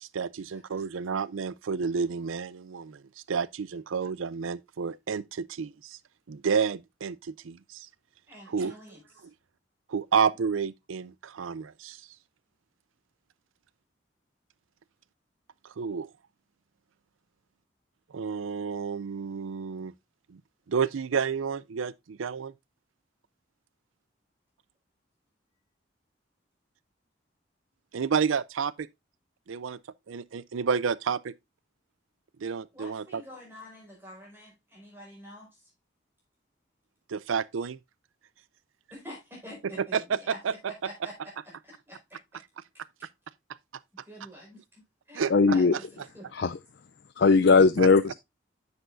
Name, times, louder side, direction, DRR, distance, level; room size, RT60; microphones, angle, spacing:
voice 1, 0.0-3.0 3.3-6.0 6.3-7.9 8.5-8.7 9.9-12.0 15.8-16.1 18.1-19.9 20.3-20.4 20.7-22.5 27.9-28.9 29.5-29.8 30.1-31.3 32.4-33.2 37.1-37.8 39.6-40.5 45.1-45.6 47.8-47.9, right 6 dB, 90° right, 0.5 m, -30 dB
voice 2, 8.3-9.3 32.7-35.7 38.9-41.1 41.4-42.2 44.1-44.8 45.1-45.2 45.5-46.3, equal, 10° right, 5.1 m, -47 dB
voice 3, 45.3-45.7 46.3-46.6 47.2-48.1, left 4 dB, 60° left, 0.4 m, -19 dB
10.0 x 7.2 x 2.5 m
head